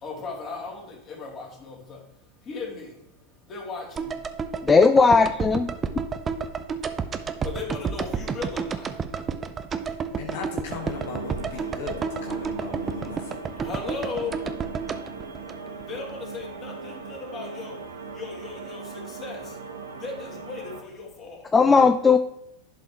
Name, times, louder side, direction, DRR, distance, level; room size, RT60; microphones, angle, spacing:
voice 1, 0.0-2.0 2.5-2.9 3.5-4.1 7.4-8.9 13.6-14.3 15.9-17.8 18.2-18.8 19.1-19.4 20.0-21.4, left 4 dB, 35° left, -1 dB, 3.0 m, -36 dB
sound 1, 4.0-16.2 16.4-16.5, right 6 dB, 25° right, 0.7 m, -31 dB
voice 2, 4.6-5.7 21.5-22.2, left 4 dB, 15° left, 7 dB, 0.4 m, -17 dB
voice 3, 9.9-13.4, left 5 dB, 65° left, 1 dB, 1.4 m, -38 dB
sound 2, 10.7-20.8, right 4 dB, 85° right, 1.0 m, -39 dB
11.0 x 5.4 x 3.0 m, 0.84 s
hypercardioid pair, 90°, 0 cm